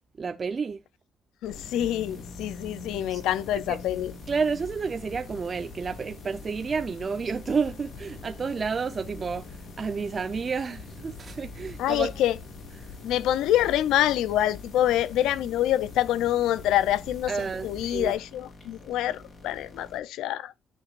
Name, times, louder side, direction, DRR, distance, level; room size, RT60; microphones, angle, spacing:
voice 1, 0.2-0.8 3.1-3.2 3.7-3.8 4.3-12.1 17.3-18.1, right 5 dB, 40° right, 0.7 m, -30 dB
voice 2, 1.4-4.1 11.8-12.4 13.0-20.5, left 12 dB, 90° left, 0.6 m, -26 dB
sound 1, 1.4-20.0, left 2 dB, 45° left, 4.3 m, -48 dB
sound 2, 1.5-18.1, left 4 dB, 65° left, 6.4 m, -44 dB
12.5 x 5.4 x 2.5 m
cardioid pair, 90°, 0 cm